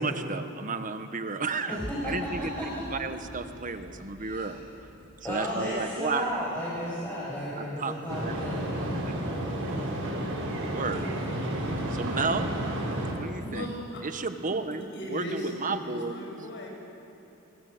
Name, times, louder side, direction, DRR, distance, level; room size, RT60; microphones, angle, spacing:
voice 1, 0.0-1.8 2.0-2.6 2.9-4.6 5.2-6.4 7.6-8.4 8.9-9.2 9.6-9.8 10.7-11.1 11.9-12.5 13.1-13.7 14.0-14.8 15.1-16.3, right 4 dB, 40° right, 8 dB, 1.4 m, -32 dB
voice 2, 1.7-2.8 4.2-4.5 5.2-8.9, equal, 10° left, -8 dB, 6.2 m, -34 dB
sound 1, 1.8-7.8, equal, 5° right, 2.4 m, -46 dB
sound 2, 8.1-13.1, right 1 dB, 70° right, 6.7 m, -31 dB
voice 3, 13.4-14.1 14.7-16.7, left 1 dB, 55° left, 0 dB, 6.9 m, -37 dB
28.5 x 23.0 x 8.1 m, 2.9 s
head